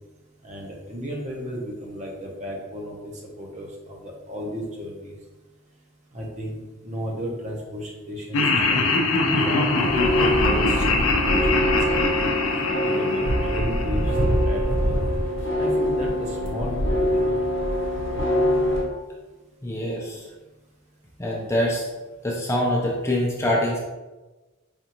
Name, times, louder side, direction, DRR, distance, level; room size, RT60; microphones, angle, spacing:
voice 1, 0.4-5.1 6.1-9.7 10.1-12.2 12.8-15.0 15.6-17.4, equal, 35° right, -1 dB, 0.7 m, -34 dB
Laughter, 8.3-14.5, left 3 dB, 80° left, 0.5 m, -23 dB
sound 1, 9.7-18.8, equal, 60° left, 0.8 m, -24 dB
voice 2, 19.6-20.3 21.2-21.9 22.2-23.8, left 1 dB, 15° left, -3 dB, 0.5 m, -24 dB
5.1 x 2.4 x 2.9 m, 1.2 s
head